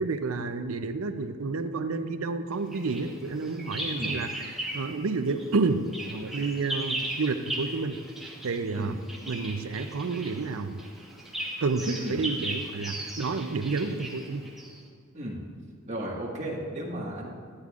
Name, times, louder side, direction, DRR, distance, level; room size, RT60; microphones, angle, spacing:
voice 1, 0.0-8.0 8.4-9.0 9.3-10.8 11.6-14.5, right 3 dB, 80° right, 9 dB, 0.5 m, -30 dB
Bird vocalization bird call bird song, 2.7-5.0 5.3-14.8, right 1 dB, ahead, 1.1 m, -37 dB
voice 2, 15.8-17.3, right 1 dB, 35° right, -3 dB, 1.7 m, -34 dB
13.0 x 9.9 x 2.5 m, 2.3 s
head